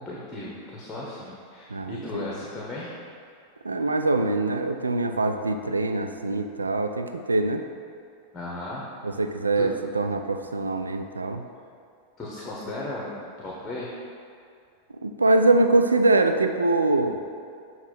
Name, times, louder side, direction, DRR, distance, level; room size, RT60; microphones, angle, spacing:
voice 1, 0.0-3.0 8.3-8.9 9.6-9.7 12.2-14.0, left 2 dB, 20° left, -5 dB, 1.1 m, -36 dB
voice 2, 1.7-2.3 3.6-7.6 9.0-11.4 15.0-17.2, right 2 dB, 80° right, 6 dB, 0.4 m, -23 dB
7.2 x 3.1 x 5.4 m, 2.4 s
figure-of-eight pair, 90°, 0 cm